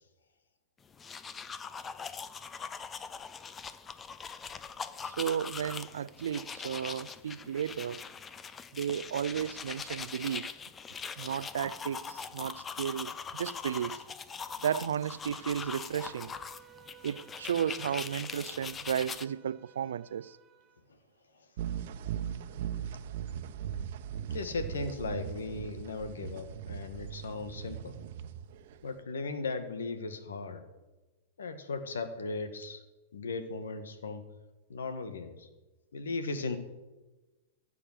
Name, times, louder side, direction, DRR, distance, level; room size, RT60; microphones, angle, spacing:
sound 1, 0.9-19.3, left 6 dB, 20° left, 0.7 m, -42 dB
voice 1, 5.0-8.1 8.7-10.5 11.2-14.0 14.6-16.3 17.0-20.4, right 9 dB, 80° right, 0.4 m, -34 dB
Bowed string instrument, 15.8-20.8, right 8 dB, 25° right, 1.2 m, -58 dB
sound 2, 21.6-29.0, right 9 dB, 60° right, 1.1 m, -39 dB
voice 2, 24.2-28.0 28.8-30.6 31.4-32.8 33.1-34.2 34.7-35.5 35.9-36.6, left 3 dB, 90° left, 1.7 m, -37 dB
15.5 x 7.2 x 7.5 m
hypercardioid pair, 120°, 0 cm